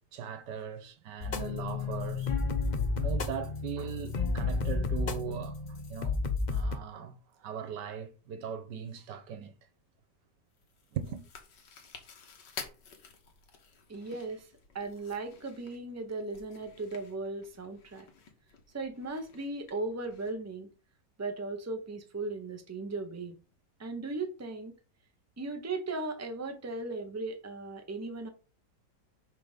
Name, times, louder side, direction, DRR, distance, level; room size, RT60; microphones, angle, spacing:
voice 1, 0.1-2.3 2.9-6.2 6.5-9.5 10.9-11.3, right 7 dB, 85° right, 1.6 m, -39 dB
sound 1, 1.2-6.8, left 4 dB, 50° left, 0.5 m, -31 dB
Chewing mastication, 10.5-20.3, left 6 dB, 90° left, 1.9 m, -51 dB
voice 2, 13.9-14.5 14.7-18.1 18.7-20.7 21.2-23.4 23.8-24.7 25.4-28.3, right 3 dB, 10° right, 0.8 m, -37 dB
5.9 x 4.3 x 5.1 m
omnidirectional pair, 1.8 m